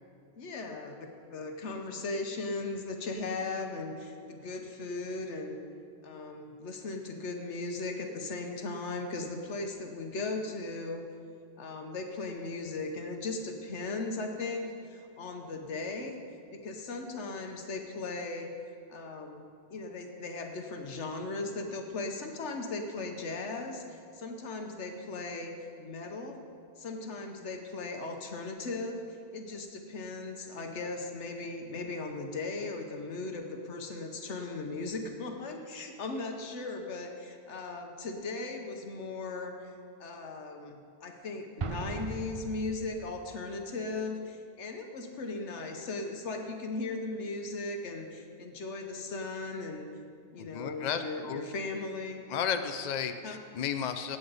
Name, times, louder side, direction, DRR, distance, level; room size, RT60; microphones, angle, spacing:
voice 1, 0.4-5.6 6.0-11.1 11.6-16.2 16.5-18.5 18.9-19.4 19.7-26.4 26.8-29.0 29.3-39.7 40.0-49.9 50.3-52.2 53.2-53.4, left 3 dB, 70° left, 4 dB, 1.2 m, -37 dB
Explosion, 41.6-43.3, right 5 dB, 60° right, 0.3 m, -38 dB
voice 2, 50.4-51.4 52.3-54.2, left 7 dB, 50° left, 8 dB, 0.5 m, -33 dB
16.5 x 7.8 x 4.0 m, 2.4 s
omnidirectional pair, 1.2 m